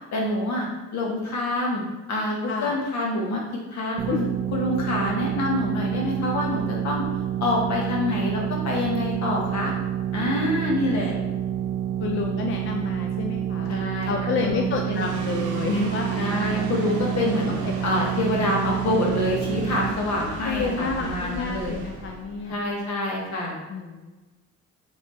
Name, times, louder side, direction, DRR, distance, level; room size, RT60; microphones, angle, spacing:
voice 1, 0.0-1.8 2.1-4.2 4.5-7.0 7.4-9.7 10.1-11.1 13.7-14.1 14.4-15.1 16.2-17.5 17.8-21.7 22.4-23.6, left 2 dB, 65° left, -2 dB, 1.3 m, -26 dB
voice 2, 2.5-2.8 4.1-4.2 12.0-13.8 14.1-16.2 17.5-17.9 20.4-22.6 23.7-24.2, left 4 dB, 40° left, 2 dB, 0.4 m, -29 dB
sound 1, 4.0-19.9, right 10 dB, 45° right, 0.4 m, -28 dB
sound 2, 14.9-23.5, right 3 dB, 80° right, 0.7 m, -37 dB
4.0 x 3.6 x 3.1 m, 1.1 s
cardioid pair, 90°, 30 cm